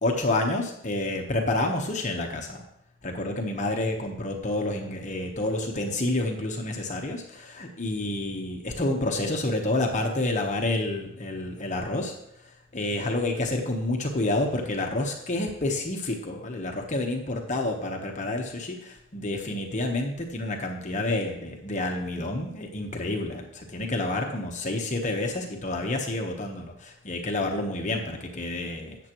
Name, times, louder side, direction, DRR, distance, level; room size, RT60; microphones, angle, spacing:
voice 1, 0.0-2.6 3.0-12.2 12.7-29.0, left 2 dB, 35° left, 2 dB, 1.1 m, -29 dB
13.0 x 8.7 x 3.0 m, 0.78 s
head